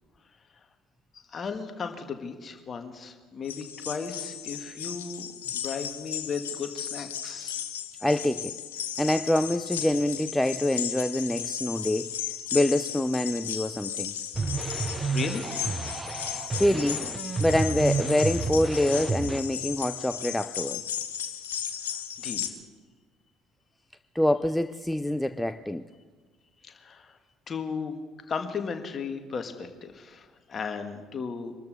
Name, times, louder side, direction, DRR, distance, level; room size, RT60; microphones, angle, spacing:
voice 1, 1.3-7.6 15.1-15.4 22.2-22.5 26.6-27.2 27.5-28.0 28.3-31.6, left 5 dB, 35° left, 7 dB, 1.7 m, -35 dB
sound 1, 3.5-22.5, left 10 dB, 75° left, 1.0 m, -35 dB
voice 2, 8.0-8.5 9.0-12.1 12.5-14.1 16.6-17.1 17.4-20.8 24.1-25.9, left 1 dB, 5° left, 11 dB, 0.5 m, -25 dB
sound 2, 14.3-19.4, right 4 dB, 25° right, 0.8 m, -31 dB
24.0 x 13.0 x 4.1 m, 1.4 s
figure-of-eight pair, 55°, 0 cm